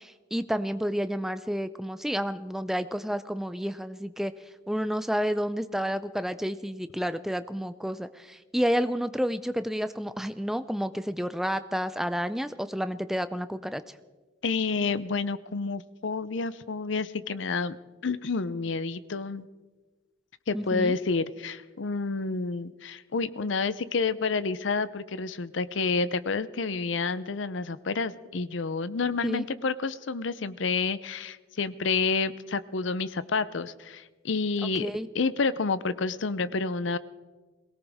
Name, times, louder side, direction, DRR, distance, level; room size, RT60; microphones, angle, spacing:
voice 1, 0.0-4.3 4.7-13.8 20.5-20.9 29.2-29.4 34.8-35.1, equal, ahead, 12 dB, 0.4 m, -30 dB
voice 2, 14.4-17.8 18.0-19.5 20.5-34.9 35.1-37.0, left 4 dB, 85° left, 16 dB, 0.6 m, -29 dB
22.5 x 17.5 x 3.6 m, 1.3 s
head